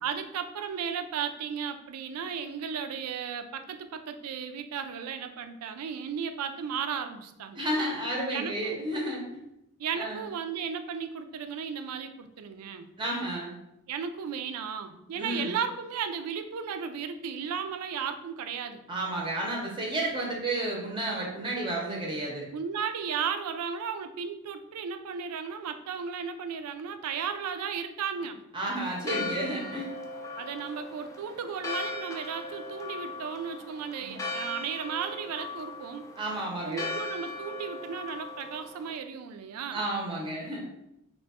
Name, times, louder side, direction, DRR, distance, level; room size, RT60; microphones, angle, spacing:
voice 1, 0.0-7.6 8.3-8.8 9.8-12.9 13.9-18.8 22.5-28.4 30.4-36.0 36.6-39.8, right 7 dB, 75° right, 7 dB, 0.4 m, -35 dB
voice 2, 7.5-9.2 9.9-10.2 13.0-13.5 15.1-15.5 18.9-22.5 28.5-29.9 34.0-34.2 36.2-36.9 39.7-40.6, right 1 dB, 20° right, -2 dB, 0.6 m, -32 dB
Church bell, 28.8-39.0, left 2 dB, 15° left, 0.3 m, -38 dB
2.9 x 2.2 x 4.1 m, 0.83 s
head